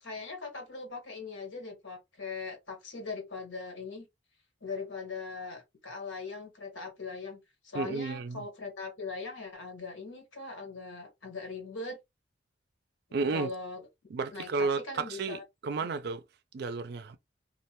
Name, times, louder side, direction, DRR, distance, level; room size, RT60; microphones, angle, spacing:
voice 1, 0.0-4.0 4.6-12.0 13.3-13.8 14.3-15.4 15.8-15.9, left 4 dB, 90° left, 1.4 m, -40 dB
voice 2, 7.7-8.4 13.1-13.5 14.1-16.2 16.5-17.2, right 4 dB, 55° right, 0.4 m, -32 dB
2.4 x 2.2 x 2.9 m
head